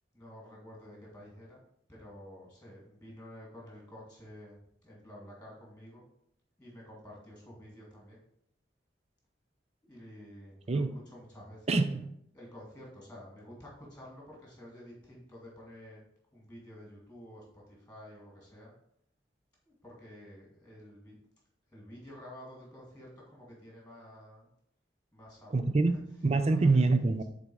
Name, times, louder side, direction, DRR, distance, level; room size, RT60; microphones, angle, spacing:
voice 1, 0.1-1.6 1.9-4.6 4.8-6.0 6.6-8.2 9.9-12.0 12.3-16.0 16.3-18.7 19.6-21.2 21.7-24.5 25.1-25.7 26.4-26.9, equal, 10° left, -3 dB, 2.0 m, -50 dB
voice 2, 11.7-12.1 25.5-27.2, right 3 dB, 35° right, 10 dB, 0.4 m, -26 dB
6.9 x 4.1 x 4.7 m, 0.71 s
head